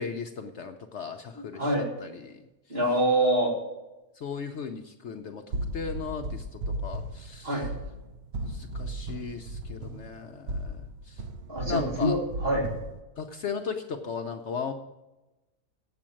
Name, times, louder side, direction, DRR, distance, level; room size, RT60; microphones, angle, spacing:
voice 1, 0.0-2.4 4.2-5.4 5.7-7.6 8.4-10.8 11.1-11.2 11.7-12.2 13.2-14.7, left 6 dB, 60° left, 5 dB, 0.9 m, -36 dB
voice 2, 1.4-1.9 2.7-3.6 7.4-7.7 11.5-12.7, right 1 dB, 45° right, -3 dB, 3.4 m, -25 dB
sound 1, 5.5-13.0, right 1 dB, 60° right, 0.7 m, -36 dB
8.4 x 7.4 x 8.8 m, 1.0 s
omnidirectional pair, 1.5 m